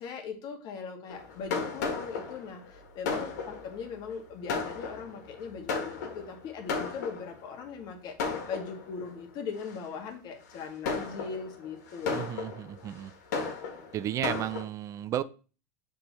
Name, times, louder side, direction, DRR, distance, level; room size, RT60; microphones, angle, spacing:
voice 1, 0.0-12.3, left 6 dB, 50° left, 5 dB, 1.6 m, -40 dB
Fireworks, 1.1-7.5 8.2-9.1 9.7-9.9 10.5-14.6, left 4 dB, 85° left, 1.7 m, -35 dB
voice 2, 12.1-13.1 13.9-15.2, right 11 dB, 35° right, 15 dB, 0.4 m, -33 dB
6.6 x 3.8 x 4.2 m, 0.36 s
supercardioid pair, 120°, 9 cm